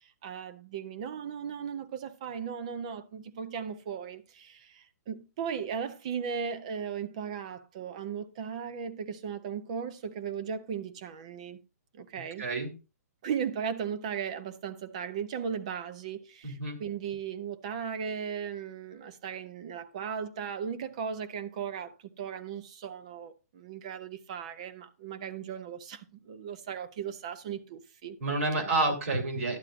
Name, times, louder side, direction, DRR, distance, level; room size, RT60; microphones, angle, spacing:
voice 1, 0.0-11.6 11.9-12.5 13.2-28.2 28.5-28.7, right 7 dB, 25° right, 0.5 m, -37 dB
voice 2, 12.4-12.7 16.4-16.8 28.2-29.6, right 2 dB, 55° right, 2.6 m, -29 dB
11.5 x 8.8 x 2.5 m
hypercardioid pair, 175°, 9 cm